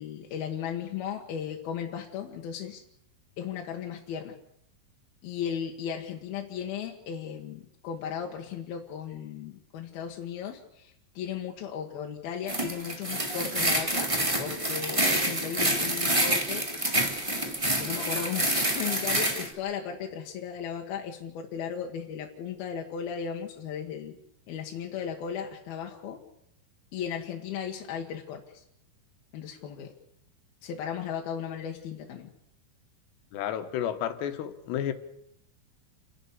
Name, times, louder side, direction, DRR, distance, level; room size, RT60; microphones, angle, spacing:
voice 1, 0.0-2.8 3.4-4.4 5.2-14.1 14.4-16.7 17.8-24.2 24.5-26.2 26.9-28.6 29.3-29.9 30.6-32.3, left 8 dB, 70° left, 2 dB, 3.2 m, -36 dB
sound 1, 12.5-19.5, right 1 dB, 15° right, 1.1 m, -27 dB
voice 2, 33.3-34.9, left 10 dB, 85° left, 9 dB, 3.5 m, -31 dB
29.5 x 11.5 x 8.4 m, 0.73 s
omnidirectional pair, 4.8 m